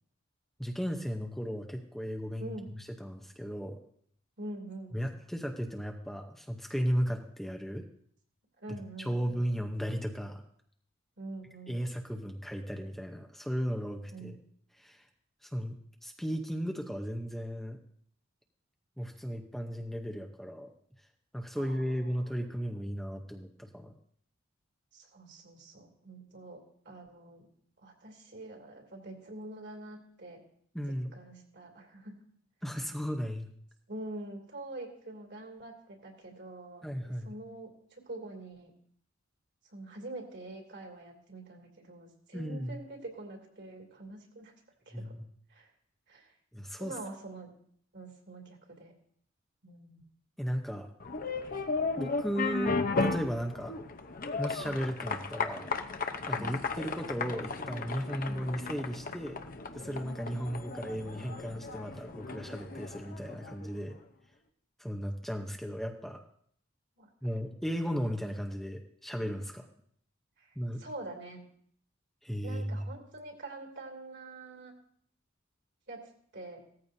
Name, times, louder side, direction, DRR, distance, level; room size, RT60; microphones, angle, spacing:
voice 1, 0.6-3.8 4.9-7.8 8.7-10.4 11.7-14.4 14.7-15.1 15.4-17.8 19.0-20.7 21.3-23.9 30.7-31.1 32.6-33.5 36.8-37.3 42.3-42.8 44.9-45.3 46.5-46.9 50.4-50.9 52.0-53.7 54.4-55.7 56.3-59.4 59.7-64.0 64.8-66.2 67.2-69.7 70.6-70.8 72.2-72.9, equal, ahead, 3 dB, 0.8 m, -35 dB
voice 2, 2.4-2.7 4.4-5.0 8.6-9.6 11.2-11.8 14.1-14.3 21.5-22.2 24.9-27.5 27.8-30.4 31.1-32.2 33.9-38.7 39.7-44.5 44.9-45.2 45.5-45.7 46.1-46.3 46.8-47.5 47.9-48.9 49.6-50.0 56.4-56.6 58.3-58.5 67.0-67.1 67.4-67.5 70.4-71.4 72.4-74.7 75.9-76.6, right 2 dB, 60° right, 2 dB, 2.8 m, -45 dB
sound 1, 51.0-63.7, left 3 dB, 45° left, 0.8 m, -35 dB
17.0 x 14.0 x 2.7 m, 0.64 s
head